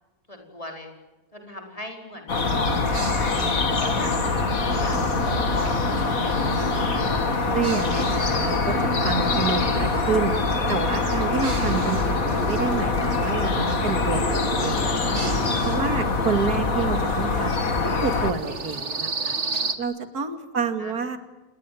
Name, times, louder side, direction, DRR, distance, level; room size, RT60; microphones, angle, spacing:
voice 1, 0.3-0.9 1.3-3.4 3.8-5.0 5.3-7.4 20.8-20.9, left 1 dB, 20° left, 3 dB, 4.8 m, -38 dB
sound 1, 2.3-18.3, left 4 dB, 65° left, 2.4 m, -24 dB
sound 2, 2.4-19.8, right 4 dB, 50° right, 2.2 m, -33 dB
voice 2, 7.5-10.4 10.7-17.7 18.0-19.4 19.8-21.2, right 5 dB, 85° right, 9 dB, 2.9 m, -28 dB
28.5 x 21.0 x 9.4 m, 1.1 s
omnidirectional pair, 1.6 m